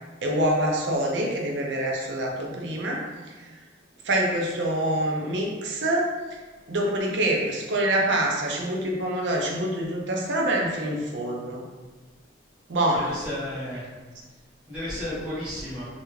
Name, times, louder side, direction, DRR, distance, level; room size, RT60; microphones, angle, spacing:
voice 1, 0.2-3.0 4.0-6.1 6.7-11.6 12.7-13.1, right 1 dB, 70° right, -1 dB, 0.5 m, -25 dB
voice 2, 12.9-13.8 14.7-15.9, left 1 dB, 5° right, -13 dB, 1.3 m, -32 dB
3.3 x 2.4 x 3.1 m, 1.3 s
head